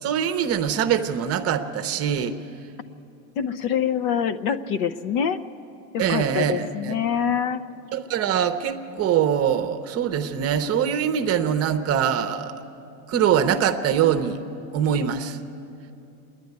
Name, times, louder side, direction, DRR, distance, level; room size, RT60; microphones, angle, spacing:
voice 1, 0.0-2.4 6.0-6.9 7.9-12.5 13.1-14.4 14.7-15.4, right 8 dB, 30° right, 8 dB, 0.8 m, -23 dB
voice 2, 3.4-5.4 5.9-7.6, left 8 dB, 50° left, 11 dB, 0.7 m, -25 dB
25.5 x 11.0 x 9.5 m, 2.8 s
supercardioid pair, 140°, 47 cm